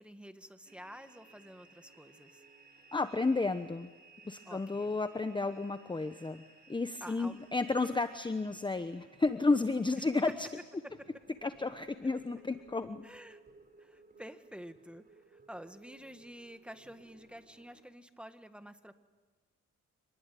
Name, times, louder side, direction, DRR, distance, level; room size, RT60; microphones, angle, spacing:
voice 1, 0.0-2.4 4.4-5.0 7.0-7.4 10.0-10.1 13.0-13.4 13.8-15.0 15.3-19.0, equal, 5° right, 9 dB, 1.7 m, -50 dB
sound 1, 0.6-17.8, right 3 dB, 30° right, 4.3 m, -61 dB
voice 2, 2.9-3.9 4.2-6.4 6.7-10.5 11.4-13.1, left 3 dB, 15° left, 9 dB, 1.0 m, -32 dB
26.5 x 20.0 x 9.3 m, 1.3 s
cardioid pair, 90°, 30 cm